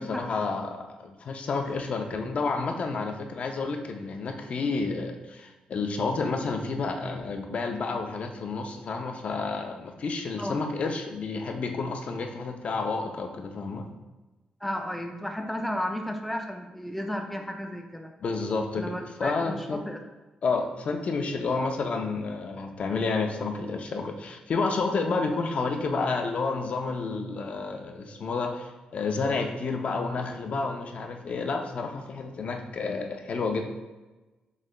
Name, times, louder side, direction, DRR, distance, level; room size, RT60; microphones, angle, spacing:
voice 1, 0.0-13.9 18.2-19.8 20.4-33.7, left 4 dB, 55° left, 4 dB, 0.5 m, -30 dB
voice 2, 14.6-18.1 18.7-20.0, left 1 dB, 5° left, 3 dB, 0.4 m, -33 dB
6.3 x 3.2 x 2.3 m, 1.1 s
cardioid pair, 90°, 3 cm